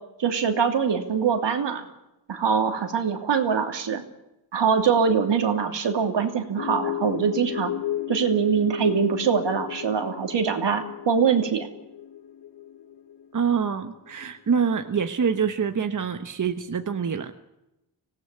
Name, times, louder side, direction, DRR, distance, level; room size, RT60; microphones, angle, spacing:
voice 1, 0.2-1.9 2.3-4.0 4.5-7.7 8.1-11.7, right 6 dB, 75° right, 5 dB, 2.9 m, -23 dB
sound 1, 6.6-14.3, left 10 dB, 65° left, 1.1 m, -34 dB
voice 2, 13.3-17.3, right 6 dB, 45° right, 7 dB, 1.2 m, -25 dB
25.0 x 17.5 x 8.4 m, 0.92 s
wide cardioid pair, 120°, 43 cm